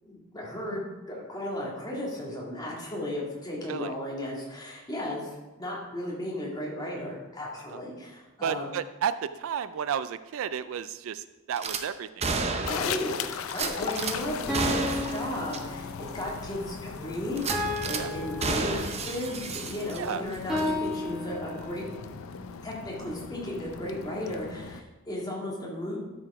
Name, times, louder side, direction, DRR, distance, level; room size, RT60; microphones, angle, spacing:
voice 1, 0.0-8.7 12.6-21.9 22.6-26.0, left 1 dB, 20° left, -3 dB, 2.0 m, -35 dB
voice 2, 8.4-12.2 18.0-18.1 20.0-20.2, right 8 dB, 65° right, 13 dB, 0.3 m, -32 dB
Gunshot gunfire / Glass, 11.6-11.8 12.2-13.0 13.5-14.2 14.5-15.2 15.5-15.6 16.1-16.2 17.4-18.0 18.4-20.2 20.5-20.7, right 4 dB, 30° right, 0.7 m, -31 dB
sound 1, 12.6-24.8, left 6 dB, 70° left, 0.5 m, -38 dB
sound 2, 14.5-16.2 17.5-19.2 20.5-22.0, left 1 dB, ahead, 1.9 m, -33 dB
12.0 x 4.9 x 4.8 m, 1.1 s
head